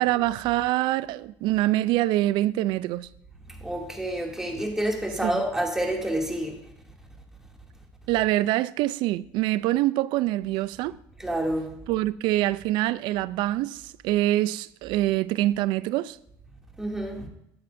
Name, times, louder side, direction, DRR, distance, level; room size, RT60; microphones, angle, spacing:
voice 1, 0.0-3.1 5.2-5.4 8.1-10.9 11.9-16.2, right 15 dB, 85° right, 0.4 m, -25 dB
voice 2, 3.6-6.6 11.2-11.7 16.8-17.3, right 1 dB, 5° right, 2.4 m, -28 dB
12.5 x 8.7 x 2.6 m
cardioid pair, 95°, 8 cm